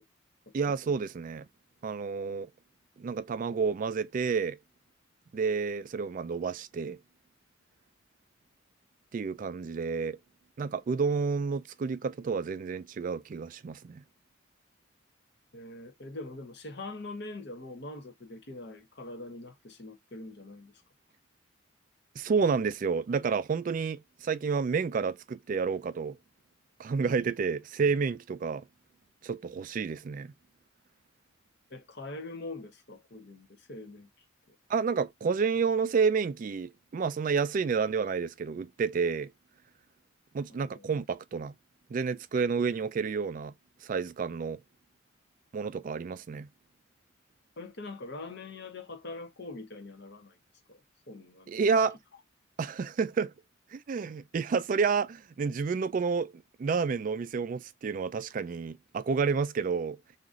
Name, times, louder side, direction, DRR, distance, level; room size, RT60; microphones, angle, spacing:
voice 1, 0.5-1.5 1.8-2.5 3.0-4.6 5.3-7.0 9.1-10.2 10.6-14.0 22.2-26.2 26.8-28.6 29.2-30.3 34.7-39.3 40.3-41.5 41.9-43.5 43.8-44.6 45.5-46.5 51.5-52.0 52.6-53.3 53.7-60.0, right 5 dB, 45° right, 0.3 m, -30 dB
voice 2, 15.5-20.7 31.7-34.1 40.5-40.9 47.6-50.4 50.7-50.8 51.1-51.5, left 2 dB, 60° left, 0.9 m, -43 dB
2.8 x 2.5 x 3.7 m
head